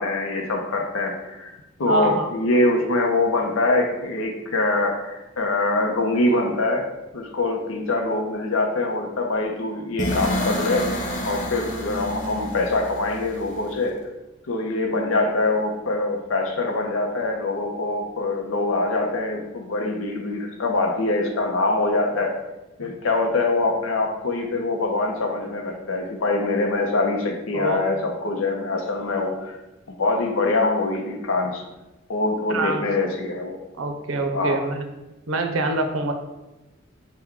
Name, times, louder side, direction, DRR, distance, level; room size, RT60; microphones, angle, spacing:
voice 1, 0.0-1.5 1.8-14.0 14.5-22.3 22.8-29.6 30.0-31.6 32.1-33.6 34.3-34.6, left 2 dB, 80° left, 1 dB, 0.6 m, -24 dB
voice 2, 1.9-2.3 27.5-27.8 32.5-32.8 33.8-34.8 35.3-36.1, right 2 dB, 85° right, 5 dB, 0.6 m, -25 dB
sound 1, 10.0-13.9, equal, 40° left, 0.7 m, -29 dB
5.8 x 2.2 x 3.6 m, 1.0 s
head